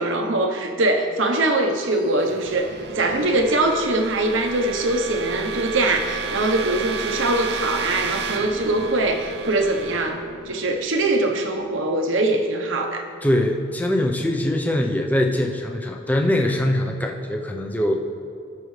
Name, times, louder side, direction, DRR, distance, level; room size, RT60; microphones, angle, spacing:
voice 1, 0.0-13.1, right 2 dB, 70° right, 3 dB, 0.9 m, -22 dB
sound 1, 1.5-11.3, right 4 dB, 50° right, 0.6 m, -32 dB
voice 2, 13.2-17.9, left 1 dB, 10° left, 2 dB, 0.6 m, -22 dB
18.5 x 6.2 x 3.2 m, 2.4 s
head